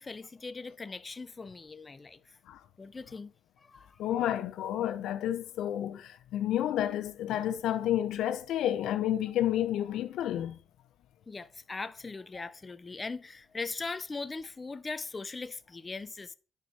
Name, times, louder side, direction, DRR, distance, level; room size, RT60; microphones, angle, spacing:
voice 1, 0.0-2.2 2.8-3.3 3.6-4.0 11.3-16.3, left 3 dB, 25° left, 0.6 m, -40 dB
voice 2, 4.0-10.6, left 11 dB, 80° left, 0.7 m, -30 dB
9.3 x 4.8 x 5.5 m
cardioid pair, 90°, 0 cm